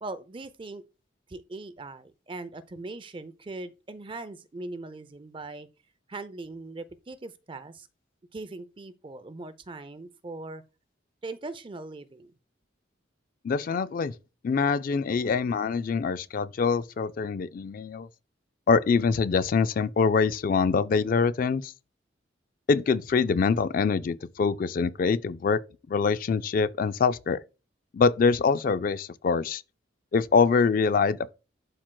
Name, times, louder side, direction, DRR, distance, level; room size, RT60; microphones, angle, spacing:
voice 1, 0.0-0.8 1.3-5.7 6.1-7.9 8.3-10.6 11.2-12.3, right 2 dB, 25° right, 0.4 m, -40 dB
voice 2, 13.4-14.1 14.4-18.1 18.7-21.7 22.7-25.6 25.9-27.4 27.9-29.6 30.1-31.3, left 5 dB, 45° left, 0.3 m, -24 dB
12.0 x 4.4 x 2.2 m
head